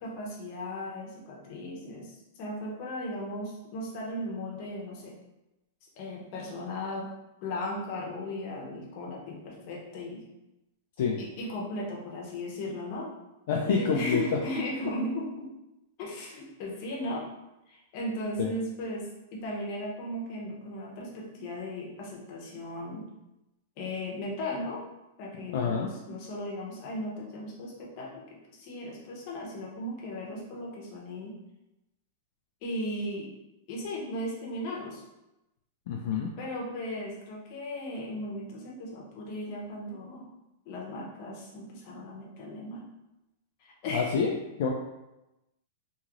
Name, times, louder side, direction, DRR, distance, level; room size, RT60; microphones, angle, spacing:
voice 1, 0.0-5.2 6.0-7.1 7.4-10.2 11.2-13.1 13.6-15.5 16.0-17.2 17.7-23.1 23.8-24.8 25.2-28.2 28.5-31.4 32.6-33.3 33.7-35.0 36.4-40.3 40.7-42.9 43.6-44.1, left 1 dB, 40° left, -2 dB, 0.8 m, -36 dB
voice 2, 13.5-14.2 18.4-18.5 25.5-25.9 35.9-36.3 43.9-44.3 44.6-44.7, left 6 dB, 55° left, -1 dB, 0.4 m, -27 dB
2.9 x 2.8 x 2.5 m, 0.95 s
supercardioid pair, 165°, 0 cm